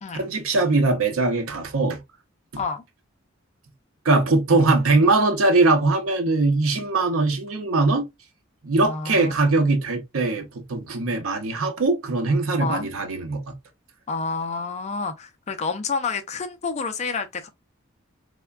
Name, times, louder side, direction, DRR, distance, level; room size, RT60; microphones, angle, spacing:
voice 1, 0.1-2.0 4.0-8.1 8.6-13.5, right 3 dB, 85° right, 0.7 m, -21 dB
voice 2, 8.8-9.7 12.6-12.9 14.1-17.5, left 4 dB, 35° left, 0.4 m, -29 dB
3.3 x 2.2 x 2.2 m
head